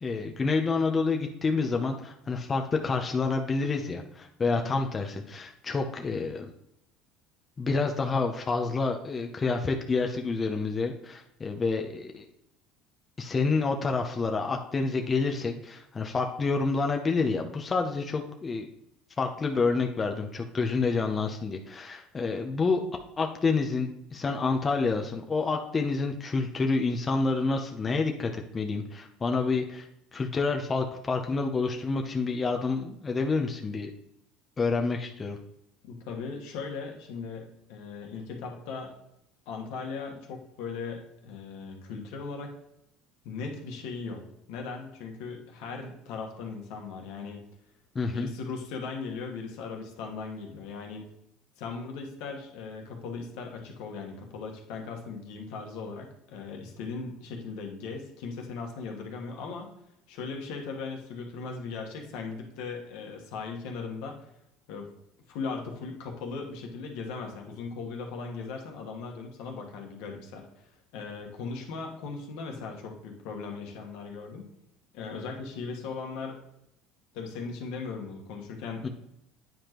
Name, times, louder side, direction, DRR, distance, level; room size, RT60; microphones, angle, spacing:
voice 1, 0.0-6.5 7.6-12.3 13.2-18.7 19.2-22.8 23.2-33.9 34.6-35.4 47.9-48.3 78.8-78.9, left 4 dB, 25° left, 3 dB, 0.7 m, -28 dB
voice 2, 35.8-38.9 39.5-42.5 43.2-47.4 48.1-51.0 51.6-59.7 60.1-64.2 64.7-64.9 65.3-74.5 74.9-76.4 77.1-78.9, left 4 dB, 75° left, 2 dB, 1.4 m, -38 dB
9.1 x 4.9 x 3.0 m, 0.78 s
supercardioid pair, 105°, 0 cm